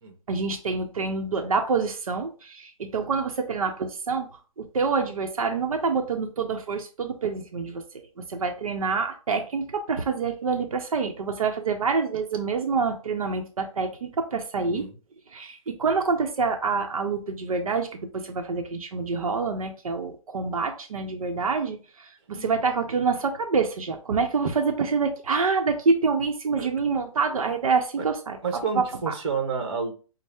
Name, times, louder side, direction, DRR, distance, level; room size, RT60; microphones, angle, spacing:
voice 1, 0.3-7.8 8.2-14.8 15.3-28.4 28.7-29.1, right 4 dB, 90° right, 4 dB, 0.7 m, -27 dB
voice 2, 14.6-15.0 22.3-22.5 26.6-26.7 28.0-28.1 28.4-29.9, right 5 dB, 50° right, 5 dB, 1.1 m, -30 dB
5.2 x 2.0 x 3.4 m, 0.36 s
hypercardioid pair, 165°, 17 cm